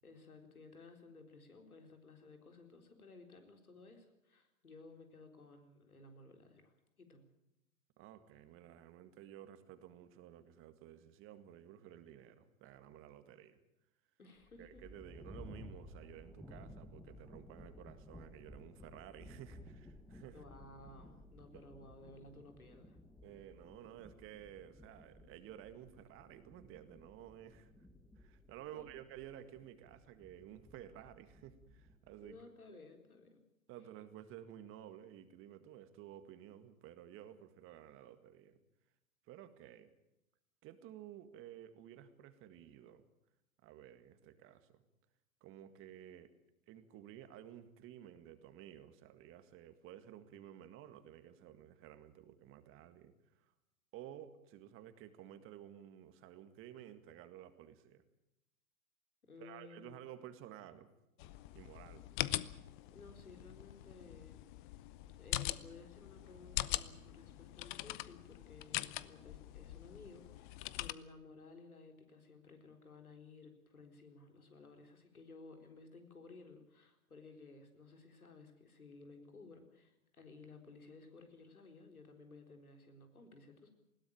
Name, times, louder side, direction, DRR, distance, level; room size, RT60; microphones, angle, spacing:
voice 1, 0.0-7.2 14.2-14.8 20.3-23.0 28.7-29.0 32.2-33.4 59.3-60.0 62.0-62.1 62.9-64.4 65.2-83.7, left 3 dB, 90° left, 6 dB, 4.2 m, -57 dB
voice 2, 8.0-13.6 14.6-20.4 21.5-21.7 23.2-27.7 28.2-32.4 32.7-32.8 33.7-38.6 39.3-39.9 40.6-43.0 43.6-44.8 45.4-46.3 46.7-53.5 53.9-58.0 59.4-60.9 61.6-62.0, right 11 dB, 30° right, 10 dB, 1.9 m, -54 dB
sound 1, 14.4-32.4, left 1 dB, 5° left, 1.1 m, -57 dB
sound 2, 61.2-70.9, left 16 dB, 35° left, 0.8 m, -42 dB
20.5 x 16.5 x 8.8 m, 0.86 s
hypercardioid pair, 115°, 42 cm